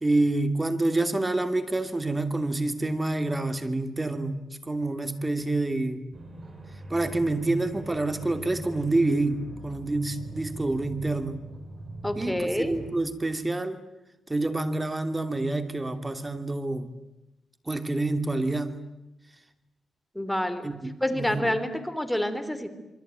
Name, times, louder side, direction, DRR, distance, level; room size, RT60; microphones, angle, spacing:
voice 1, 0.0-4.4 4.7-6.0 6.9-11.4 12.2-13.8 14.3-16.9 17.7-18.8 20.6-21.6, right 2 dB, 20° right, 9 dB, 2.8 m, -27 dB
sound 1, 6.1-12.9, right 2 dB, 40° right, 7.8 m, -42 dB
voice 2, 12.0-12.7 20.1-20.7 21.0-22.7, left 1 dB, 5° left, 10 dB, 3.2 m, -28 dB
26.5 x 24.0 x 9.3 m, 0.95 s
cardioid pair, 90°, 0 cm